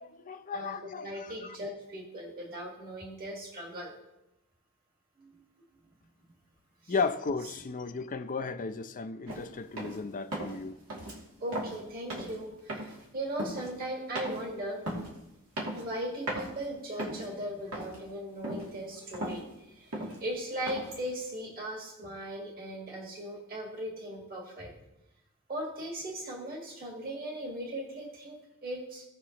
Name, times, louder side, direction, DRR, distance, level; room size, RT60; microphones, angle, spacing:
voice 1, 0.2-1.6 6.9-11.1, left 4 dB, 35° left, 0.5 m, -35 dB
voice 2, 1.0-3.9 5.2-5.3 6.8-6.9 11.4-14.8 15.8-19.4 19.8-19.9 20.2-24.7 25.5-29.0, right 1 dB, 40° right, 1.7 m, -38 dB
sound 1, 9.3-9.5 9.8-10.0 10.3-10.6 10.9-11.2 11.5-11.8 12.1-12.4 12.7-13.1 13.4-13.7 14.2-14.4 14.9-15.1 15.6-16.0 16.3-16.5 16.9-17.4 17.7-18.1 18.4-18.7 19.0-19.4 19.9-20.2 20.7-21.1, right 1 dB, 85° right, 2.6 m, -37 dB
17.5 x 5.9 x 2.9 m
head